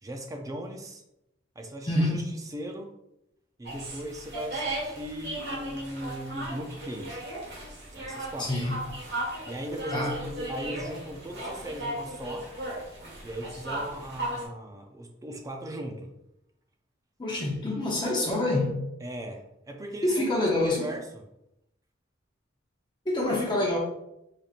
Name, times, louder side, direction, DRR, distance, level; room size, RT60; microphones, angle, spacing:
voice 1, 0.0-1.0 1.6-2.9 3.6-7.3 7.9-8.7 9.5-12.5 13.2-16.1 19.0-20.5 20.8-21.2, equal, 15° right, 3 dB, 0.4 m, -38 dB
voice 2, 1.9-2.2 8.4-8.7 9.9-10.2 17.2-18.8 20.0-20.9 23.1-23.8, left 1 dB, 25° left, -3 dB, 0.7 m, -26 dB
sound 1, 3.6-14.4, right 1 dB, 60° right, 1.4 m, -36 dB
5.0 x 2.9 x 2.4 m, 0.84 s
head